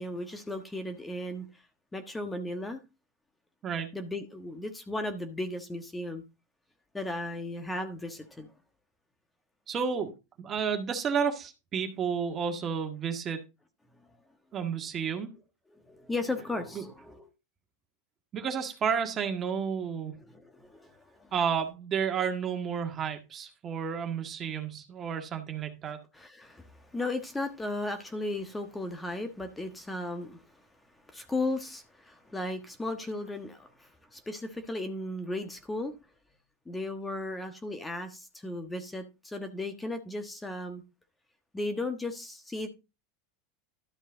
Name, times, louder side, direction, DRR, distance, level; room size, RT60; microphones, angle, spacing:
voice 1, 0.0-1.5 1.9-2.8 3.9-6.2 6.9-8.5 15.7-17.3 20.3-21.3 26.1-30.4 31.1-36.0 36.7-40.8 41.5-42.7, left 2 dB, 10° left, 1.3 m, -36 dB
voice 2, 9.7-13.4 14.5-15.3 16.7-16.8 18.3-20.1 21.3-26.0, right 7 dB, 35° right, 1.7 m, -31 dB
12.5 x 5.4 x 3.8 m
hypercardioid pair, 90°, 0 cm